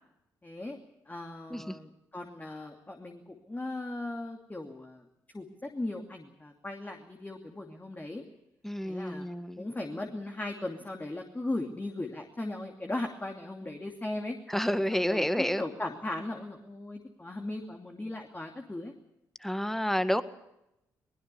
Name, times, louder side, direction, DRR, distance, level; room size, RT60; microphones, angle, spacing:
voice 1, 0.4-0.8 1.1-5.0 5.3-8.2 8.8-9.3 9.6-14.4 14.9-18.9, left 2 dB, 20° left, 3 dB, 2.7 m, -38 dB
voice 2, 8.6-9.6 14.5-15.6 19.4-20.2, equal, 5° left, 12 dB, 1.7 m, -29 dB
22.5 x 20.5 x 7.0 m, 0.86 s
hypercardioid pair, 40°, 10 cm